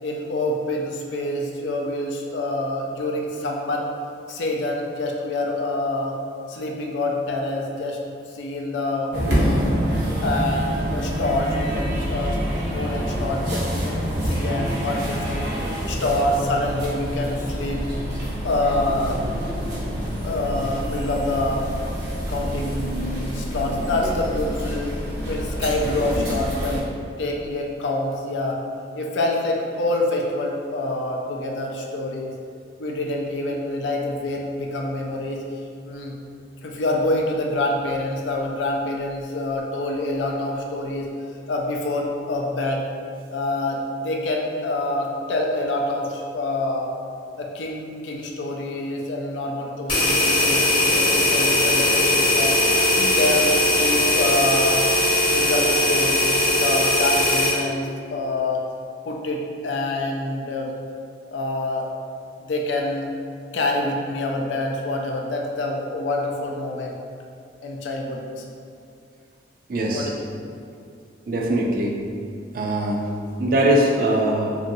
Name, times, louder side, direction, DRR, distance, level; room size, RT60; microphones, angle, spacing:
voice 1, 0.0-3.9 4.3-6.2 6.5-8.0 8.3-9.8 10.2-15.5 15.9-17.8 18.4-19.2 19.7-19.8 20.2-21.7 22.1-22.9 23.2-25.0 25.3-26.9 27.2-28.6 28.9-32.3 32.8-35.4 35.8-36.1 36.6-41.1 41.5-42.9 43.3-46.9 47.4-52.6 52.9-54.8 55.3-58.7 59.1-60.8 61.3-61.9 62.4-63.1 63.5-66.9 67.6-68.4 69.9-70.3, left 2 dB, 85° left, 0 dB, 0.4 m, -26 dB
sound 1, 9.1-26.8, equal, 65° right, 0.8 m, -27 dB
sound 2, 49.9-57.6, left 1 dB, 25° left, 0.8 m, -19 dB
voice 2, 69.7-70.1 71.3-71.9 72.5-73.1 73.4-74.6, right 1 dB, 50° right, -1 dB, 0.4 m, -21 dB
3.0 x 2.7 x 2.6 m, 2.4 s
head